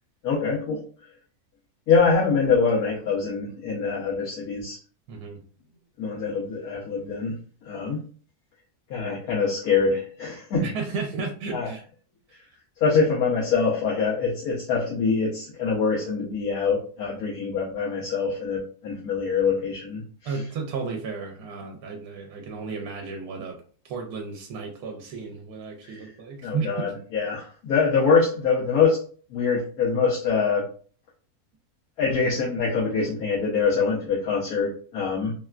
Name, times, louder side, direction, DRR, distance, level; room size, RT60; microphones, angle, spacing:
voice 1, 0.2-0.8 1.9-4.8 6.0-7.3 7.6-8.0 8.9-10.7 11.5-11.7 12.8-20.4 25.8-26.1 26.4-29.0 29.3-30.7 32.0-35.3, left 5 dB, 75° left, -5 dB, 1.3 m, -24 dB
voice 2, 5.1-5.4 10.6-11.8 20.2-23.6 23.8-26.9, right 4 dB, 80° right, 2 dB, 1.1 m, -33 dB
3.4 x 2.2 x 2.3 m, 0.43 s
omnidirectional pair, 1.6 m